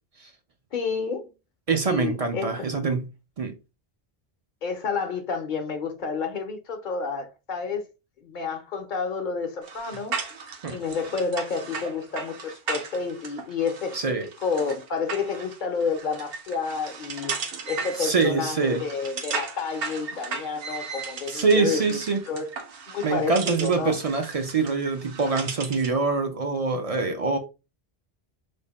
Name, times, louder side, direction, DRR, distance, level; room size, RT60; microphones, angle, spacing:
voice 1, 0.7-1.3 1.8-2.6 4.6-7.9 8.2-10.2 10.7-14.1 14.4-22.0 22.3-22.5 22.9-24.0, left 5 dB, 55° left, 0.7 m, -30 dB
voice 2, 1.7-3.0 3.4-3.5 10.6-10.8 13.9-14.3 18.0-18.8 21.3-22.2 23.0-27.4, right 4 dB, 45° right, 0.5 m, -24 dB
sound 1, 9.6-26.0, right 5 dB, 70° right, 0.9 m, -36 dB
3.3 x 2.1 x 4.0 m
omnidirectional pair, 1.0 m